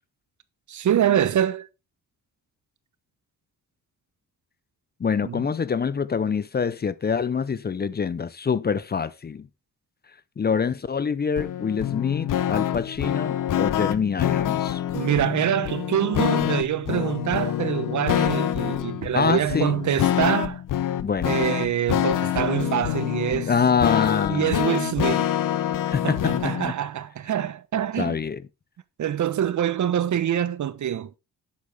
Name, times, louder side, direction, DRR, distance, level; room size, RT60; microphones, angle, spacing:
voice 1, 0.7-1.7 5.2-5.4 14.9-20.6 21.2-23.5 24.3-25.4 26.0-28.2 29.0-31.1, right 10 dB, 65° right, 1.0 m, -25 dB
voice 2, 5.0-9.5 10.4-14.8 19.1-19.8 21.0-21.4 23.5-24.6 25.9-26.7 28.0-28.4, left 6 dB, 30° left, 0.6 m, -25 dB
sound 1, 11.4-26.7, left 11 dB, 85° left, 0.9 m, -26 dB
11.5 x 8.4 x 3.5 m
wide cardioid pair, 125°, 32 cm